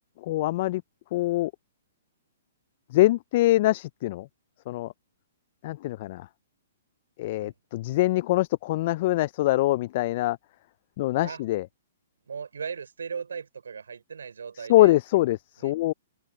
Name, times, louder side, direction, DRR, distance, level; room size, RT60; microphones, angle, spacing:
voice 1, 0.2-0.8 1.1-1.5 2.9-4.3 4.7-4.9 5.6-6.3 7.2-10.4 11.0-11.6 14.6-15.9, left 17 dB, 50° left, 0.4 m, -24 dB
voice 2, 12.3-14.9 15.6-15.9, right 6 dB, 75° right, 4.0 m, -38 dB
open air
hypercardioid pair, 120°, 0 cm